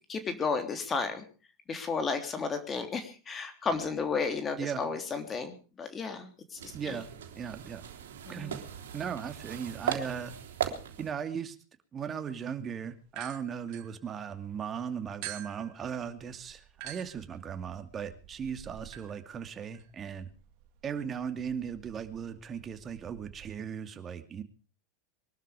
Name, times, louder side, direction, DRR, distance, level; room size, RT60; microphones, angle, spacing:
voice 1, 0.1-1.3 1.7-7.0 8.3-8.6, left 5 dB, 25° left, 7 dB, 3.2 m, -33 dB
sound 1, 6.6-11.1, right 9 dB, 80° right, 3.3 m, -38 dB
voice 2, 6.7-7.1 7.4-7.8 8.3-8.5 8.9-10.3 11.0-11.6 11.9-20.3 20.8-24.4, right 7 dB, 30° right, 8 dB, 2.6 m, -37 dB
sound 2, 13.1-14.6 15.2-23.5, right 12 dB, 60° right, 2.4 m, -49 dB
23.0 x 12.5 x 5.1 m, 0.38 s
hypercardioid pair, 95°, 0 cm